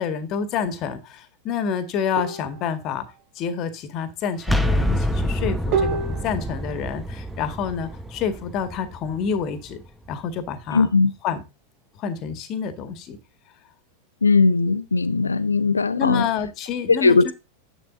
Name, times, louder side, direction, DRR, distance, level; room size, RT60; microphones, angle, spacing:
voice 1, 0.0-3.1 3.4-9.8 10.1-10.9 11.2-11.4 12.0-13.2 16.0-17.3, left 7 dB, 35° left, 1.9 m, -28 dB
sound 1, 2.2-2.7 5.7-6.6, right 5 dB, 45° right, 4.0 m, -27 dB
sound 2, 4.4-10.1, equal, ahead, 1.1 m, -27 dB
voice 2, 10.7-11.1 14.2-16.3 16.9-17.3, left 4 dB, 75° left, 0.9 m, -18 dB
11.0 x 7.8 x 3.9 m
figure-of-eight pair, 90°, 0 cm